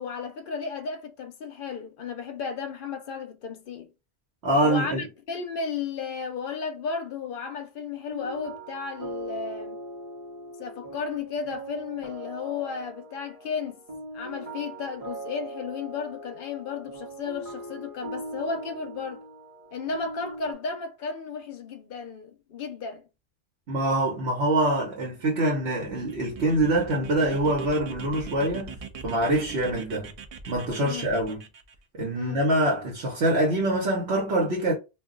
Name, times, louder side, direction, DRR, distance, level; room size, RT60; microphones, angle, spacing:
voice 1, 0.0-3.9 4.6-9.8 10.6-13.8 14.1-19.2 19.7-23.0 30.8-31.1 32.1-32.4, left 5 dB, 60° left, 0.6 m, -34 dB
voice 2, 4.4-5.0 23.7-30.1 30.5-31.4 31.9-34.8, right 1 dB, 75° right, 1.1 m, -25 dB
sound 1, 8.1-20.5, right 1 dB, 40° right, 0.9 m, -40 dB
sound 2, 25.7-31.8, right 5 dB, 55° right, 0.4 m, -41 dB
2.4 x 2.2 x 3.7 m
omnidirectional pair, 1.1 m